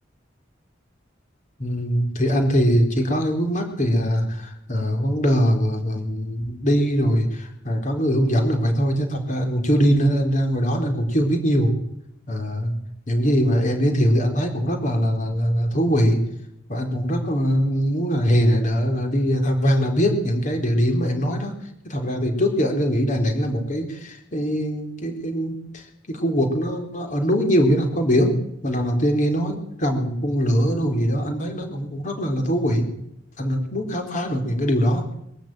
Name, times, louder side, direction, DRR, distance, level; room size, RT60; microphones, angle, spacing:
voice 1, 1.6-11.7 12.3-12.7 13.1-16.2 16.7-21.5 21.8-28.4 28.6-32.9 33.4-35.0, equal, 45° left, 4 dB, 4.2 m, -22 dB
22.0 x 13.0 x 9.2 m, 0.77 s
head